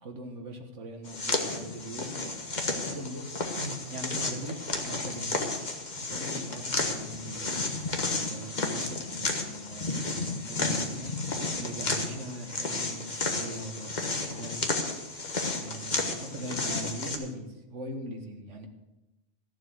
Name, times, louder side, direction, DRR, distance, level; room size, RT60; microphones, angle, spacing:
voice 1, 0.0-2.2 2.9-3.3 3.6-5.5 6.1-7.6 8.3-11.1 11.6-14.6 15.4-18.7, right 1 dB, 75° right, 4 dB, 1.8 m, -41 dB
sound 1, 1.0-17.2, left 3 dB, 40° left, 1.4 m, -32 dB
14.5 x 7.4 x 6.4 m, 1.0 s
omnidirectional pair, 1.2 m